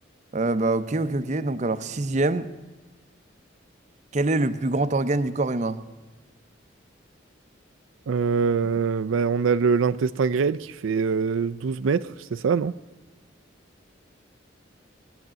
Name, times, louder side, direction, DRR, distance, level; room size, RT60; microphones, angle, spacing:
voice 1, 0.3-2.5 4.1-5.8, right 2 dB, 35° right, 0.6 m, -24 dB
voice 2, 8.1-12.7, right 5 dB, 85° right, 0.4 m, -24 dB
20.5 x 8.0 x 7.5 m
head